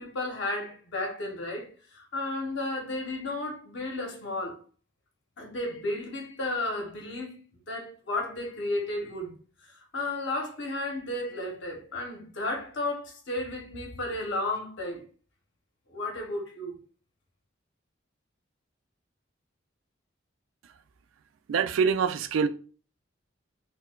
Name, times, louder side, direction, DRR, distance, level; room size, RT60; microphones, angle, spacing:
voice 1, 0.0-4.6 5.4-7.4 7.7-9.3 9.7-15.0 15.9-16.7, left 2 dB, 65° left, 0.8 m, -33 dB
voice 2, 21.5-22.5, right 6 dB, 85° right, 0.3 m, -24 dB
4.3 x 2.1 x 2.2 m
head